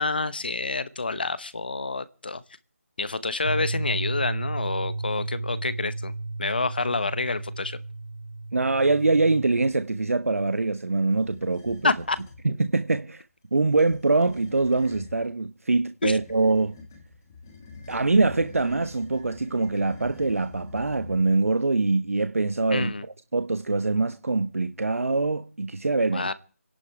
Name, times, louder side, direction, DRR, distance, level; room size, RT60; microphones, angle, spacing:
voice 1, 0.0-2.4 3.0-6.1 6.4-7.8 11.8-12.2 16.0-16.2 22.7-23.0 26.1-26.3, left 3 dB, 40° left, 1.0 m, -28 dB
Bass guitar, 3.4-9.7, right 2 dB, 45° right, 4.0 m, -33 dB
voice 2, 8.5-11.9 12.4-13.2 13.5-16.8 17.9-22.9 23.3-26.3, right 3 dB, 70° right, 1.0 m, -24 dB
sound 1, 11.2-12.4 13.6-15.2 16.0-21.5, left 4 dB, 15° left, 1.3 m, -46 dB
27.0 x 11.0 x 4.8 m
figure-of-eight pair, 180°, 8 cm